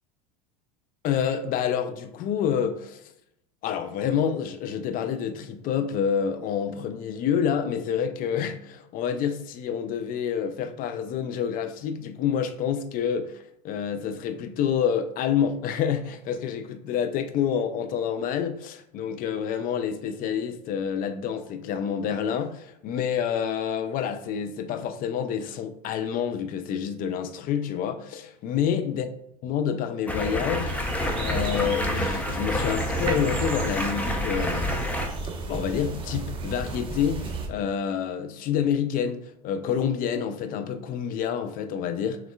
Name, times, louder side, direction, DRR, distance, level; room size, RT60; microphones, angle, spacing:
voice 1, 1.0-3.0 3.6-29.1 29.4-30.7 31.1-34.7 35.5-42.2, left 8 dB, 45° left, 0.6 m, -28 dB
Stream, 30.1-35.1, left 1 dB, 5° left, 0.8 m, -28 dB
sound 1, 30.7-37.5, right 3 dB, 25° right, 1.0 m, -33 dB
6.2 x 3.6 x 2.3 m
hypercardioid pair, 95°, 20 cm